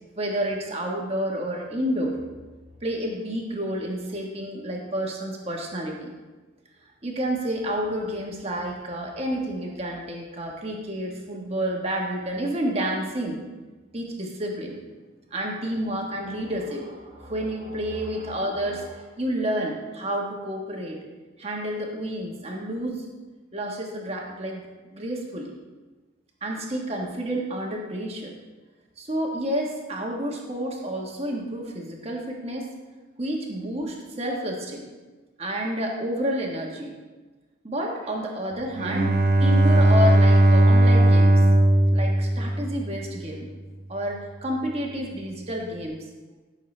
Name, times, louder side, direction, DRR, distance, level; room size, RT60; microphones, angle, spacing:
voice 1, 0.2-2.2 2.8-6.1 7.0-13.4 13.9-14.8 15.3-21.0 21.4-23.1 23.5-24.7 24.9-25.5 26.4-28.3 29.0-32.7 33.2-34.9 35.4-36.9 37.6-39.1 39.4-41.4 41.9-43.5 43.9-46.0, equal, 30° right, 0 dB, 1.4 m, -30 dB
Bowed string instrument, 38.8-43.1, right 1 dB, 45° right, 0.6 m, -18 dB
13.5 x 6.5 x 3.3 m, 1.3 s
head